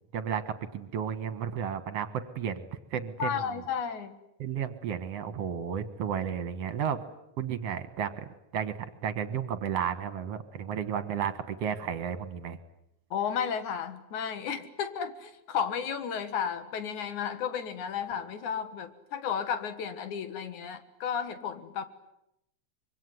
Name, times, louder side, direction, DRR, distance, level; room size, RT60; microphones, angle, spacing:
voice 1, 0.1-3.4 4.4-7.0 7.4-8.3 8.5-8.7 9.0-12.6, right 8 dB, 60° right, 12 dB, 2.4 m, -33 dB
voice 2, 3.2-4.1 13.1-21.8, left 7 dB, 80° left, 10 dB, 3.0 m, -33 dB
25.5 x 24.0 x 9.7 m, 0.81 s
omnidirectional pair, 3.4 m